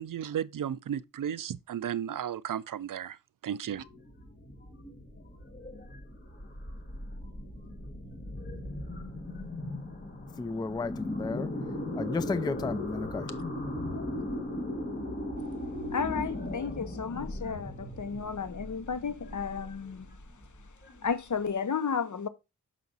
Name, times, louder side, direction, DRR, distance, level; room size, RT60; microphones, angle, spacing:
voice 1, 0.0-3.2 3.4-3.8, right 9 dB, 70° right, 0.5 m, -34 dB
sound 1, 3.6-21.4, left 1 dB, 30° left, 1.9 m, -38 dB
voice 2, 10.4-11.5 11.9-13.3, left 3 dB, 15° left, 0.3 m, -32 dB
voice 3, 15.9-20.1 21.0-22.3, left 6 dB, 65° left, 1.0 m, -33 dB
6.3 x 5.9 x 4.0 m
wide cardioid pair, 75°, 33 cm